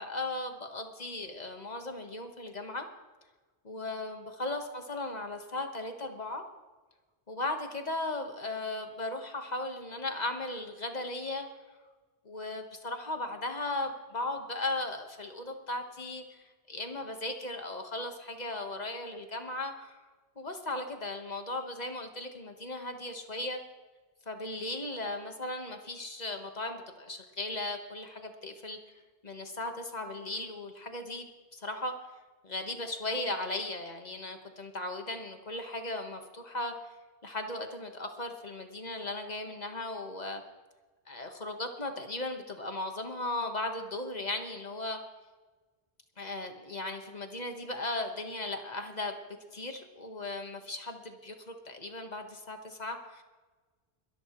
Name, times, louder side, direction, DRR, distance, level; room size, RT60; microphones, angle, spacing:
voice 1, 0.0-2.9 3.6-6.4 7.3-11.5 12.2-20.0 20.4-23.6 24.3-28.8 29.2-31.9 32.4-36.7 37.2-40.4 41.1-45.0 46.2-49.1 49.5-53.2, left 2 dB, 40° left, 5 dB, 1.5 m, -37 dB
22.0 x 13.5 x 3.1 m, 1.3 s
omnidirectional pair, 1.1 m